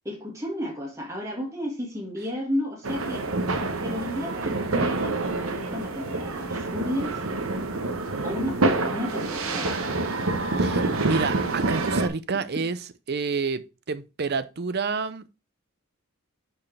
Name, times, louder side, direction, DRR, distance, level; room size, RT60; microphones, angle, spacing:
voice 1, 0.1-3.3 3.8-7.2 8.2-10.0, left 1 dB, 15° right, 1.8 m, -32 dB
sound 1, 2.8-12.1, right 2 dB, 80° right, 1.0 m, -27 dB
voice 2, 10.6-12.8 13.1-15.2, right 4 dB, 50° right, 0.6 m, -29 dB
10.5 x 4.5 x 3.4 m
head